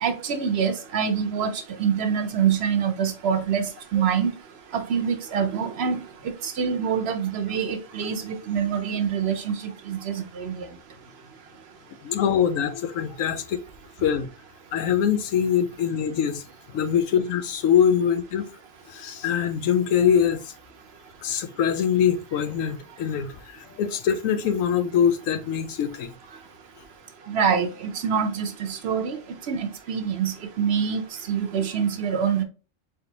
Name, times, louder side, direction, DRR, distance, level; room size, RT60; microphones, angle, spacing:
voice 1, 0.0-3.6 3.9-4.3 4.7-6.0 6.4-10.7 27.3-29.2 29.5-31.0 31.3-32.4, right 7 dB, 60° right, 0.8 m, -25 dB
voice 2, 12.0-13.6 14.0-14.3 14.7-16.4 16.7-18.5 18.9-20.5 21.2-26.1, left 8 dB, 80° left, 1.0 m, -23 dB
3.8 x 3.5 x 2.7 m
omnidirectional pair, 1.3 m